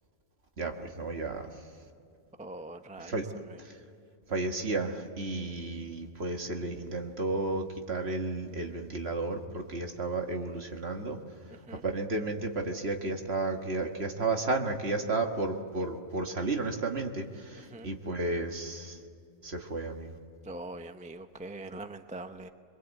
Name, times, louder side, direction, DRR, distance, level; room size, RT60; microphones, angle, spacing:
voice 1, 0.6-1.8 3.0-3.3 3.6-3.8 4.3-19.0 19.4-20.2, right 2 dB, 50° right, 3 dB, 1.9 m, -33 dB
voice 2, 2.4-3.6 11.6-11.8 17.7-17.9 20.4-22.5, right 2 dB, 10° right, 8 dB, 0.6 m, -43 dB
24.5 x 22.0 x 8.3 m, 2.4 s
omnidirectional pair, 1.4 m